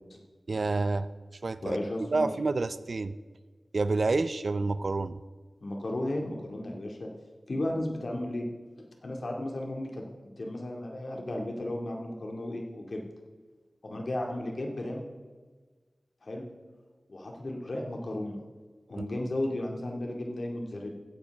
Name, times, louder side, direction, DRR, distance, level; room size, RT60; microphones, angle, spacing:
voice 1, 0.5-1.1 1.4-1.8 2.1-3.1 3.7-5.2 19.0-19.1, right 3 dB, 65° right, 14 dB, 0.5 m, -28 dB
voice 2, 1.6-2.3 5.6-7.1 7.5-8.4 9.0-10.0 10.4-13.0 13.8-15.0 16.2-16.5 17.1-18.4 18.9-20.9, left 1 dB, 65° left, 1 dB, 2.1 m, -34 dB
16.0 x 9.8 x 3.5 m, 1.4 s
wide cardioid pair, 70°, 0 cm